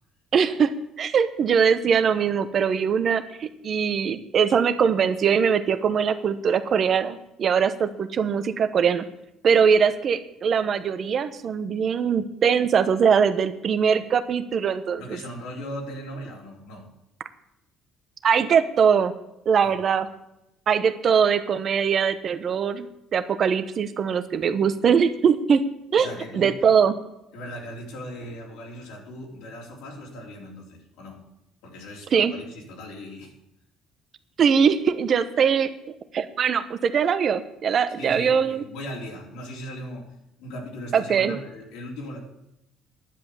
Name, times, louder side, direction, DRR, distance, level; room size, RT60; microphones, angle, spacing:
voice 1, 0.3-9.0 9.4-15.0 18.2-19.1 19.4-20.1 20.7-25.6 25.9-26.1 26.3-26.9 32.1-32.3 34.4-35.7 36.1-38.6 40.9-41.4, right 7 dB, 45° right, 11 dB, 0.9 m, -21 dB
voice 2, 15.0-16.9 19.6-19.8 25.9-26.6 27.3-31.2 31.6-33.3 38.0-40.1 40.4-42.2, equal, 85° left, -1 dB, 3.5 m, -38 dB
10.5 x 7.9 x 7.1 m, 0.87 s
cardioid pair, 105°, 0 cm